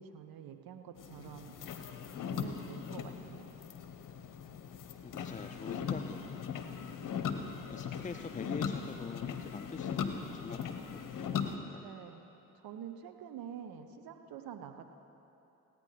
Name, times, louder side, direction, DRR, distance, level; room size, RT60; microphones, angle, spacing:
voice 1, 0.0-1.6 2.3-3.5 11.8-12.3 12.6-14.9, right 8 dB, 65° right, 7 dB, 1.0 m, -47 dB
sound 1, 1.0-11.6, left 7 dB, 50° left, 1.0 m, -39 dB
voice 2, 5.0-6.4 6.9-7.0 7.7-11.1 11.5-11.9, left 5 dB, 20° left, 6 dB, 0.5 m, -45 dB
17.0 x 9.4 x 5.1 m, 3.0 s
hypercardioid pair, 45°, 39 cm